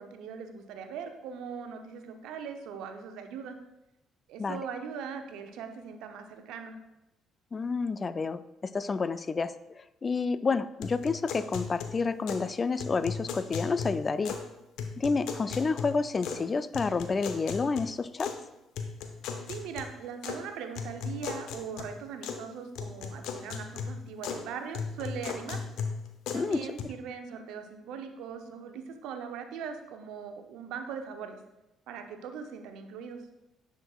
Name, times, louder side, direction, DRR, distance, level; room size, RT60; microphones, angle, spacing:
voice 1, 0.0-3.6 4.3-6.7 19.5-25.6 26.3-31.4 31.9-33.2, right 6 dB, 75° right, 6 dB, 0.7 m, -40 dB
voice 2, 7.5-14.4 15.0-18.3 26.3-26.7, left 4 dB, 35° left, 14 dB, 0.3 m, -29 dB
sound 1, 10.8-12.5 12.8-14.5 14.8-16.5 16.7-18.4 18.8-20.4 20.8-22.4 22.8-24.4 24.7-26.8, left 5 dB, 70° left, 0.7 m, -37 dB
9.8 x 5.2 x 2.4 m, 0.93 s
hypercardioid pair, 55°, 0 cm